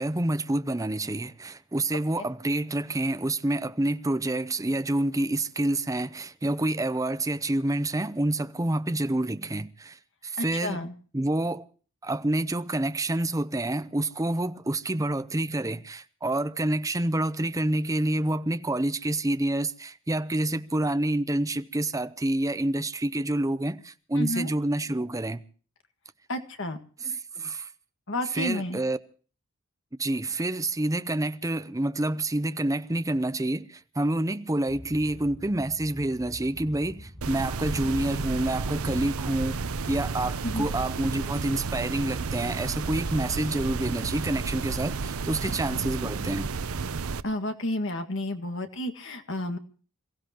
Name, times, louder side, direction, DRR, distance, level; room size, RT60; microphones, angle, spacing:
voice 1, 0.0-10.8 11.1-11.7 12.0-25.4 27.0-27.7 28.3-29.0 30.0-46.5, right 1 dB, 15° right, 0.7 m, -28 dB
voice 2, 10.4-10.9 24.2-24.5 26.3-26.8 28.1-28.8 40.4-40.7 45.4-45.8 47.2-49.6, left 1 dB, 60° left, 1.8 m, -31 dB
sound 1, 34.7-40.6, equal, 5° left, 6.7 m, -44 dB
sound 2, 37.2-47.2, right 4 dB, 90° right, 0.7 m, -32 dB
27.5 x 15.5 x 3.0 m
head